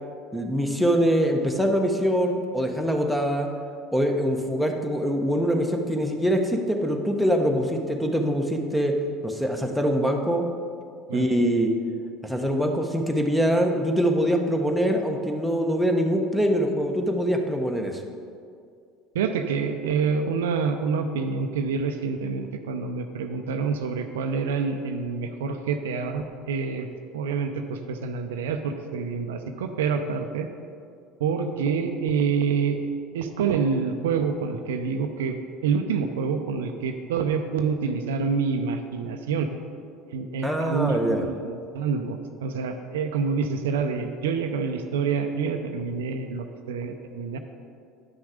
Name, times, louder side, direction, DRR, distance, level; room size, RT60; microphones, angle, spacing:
voice 1, 0.3-3.5 3.9-9.0 9.2-10.4 11.1-11.7 12.2-18.0 40.4-41.3, equal, ahead, 3 dB, 1.2 m, -24 dB
voice 2, 19.1-26.9 27.1-30.5 31.2-32.8 33.1-35.4 35.6-39.5 40.1-47.4, right 5 dB, 80° right, 6 dB, 0.6 m, -27 dB
9.7 x 6.2 x 5.0 m, 2.3 s
hypercardioid pair, 75°, 0 cm